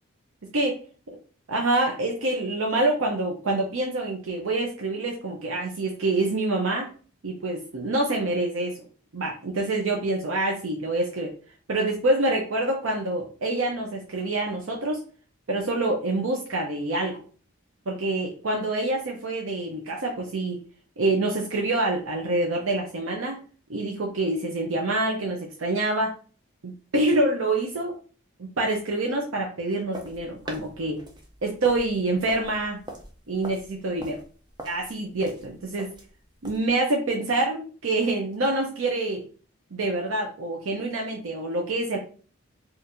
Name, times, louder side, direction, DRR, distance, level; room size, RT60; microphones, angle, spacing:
voice 1, 1.5-6.9 7.2-8.8 9.1-11.3 11.7-15.0 15.5-17.2 17.9-20.6 21.0-23.4 23.7-26.1 26.6-27.9 28.4-31.0 31.4-32.8 33.3-34.2 34.6-35.9 36.4-39.2 39.7-42.0, right 2 dB, 75° right, 0 dB, 0.7 m, -26 dB
sound 1, 29.9-36.7, right 1 dB, 20° right, 0.5 m, -43 dB
4.3 x 2.5 x 2.6 m, 0.39 s
head